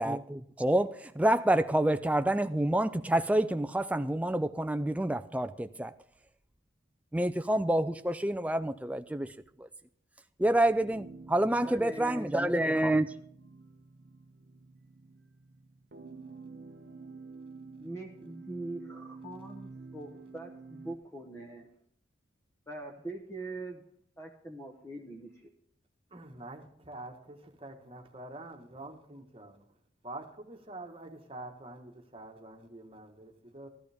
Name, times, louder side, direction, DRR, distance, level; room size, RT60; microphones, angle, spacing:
voice 1, 0.0-5.9 7.1-9.7 10.4-13.1, right 1 dB, 5° right, 0.4 m, -28 dB
sound 1, 10.8-21.0, right 4 dB, 50° right, 0.7 m, -50 dB
voice 2, 11.6-12.3 17.8-21.7 22.7-23.8 24.2-25.5, right 2 dB, 15° left, 1.0 m, -42 dB
voice 3, 26.1-29.6 30.0-33.7, right 2 dB, 25° right, 1.4 m, -46 dB
14.5 x 13.5 x 3.5 m
head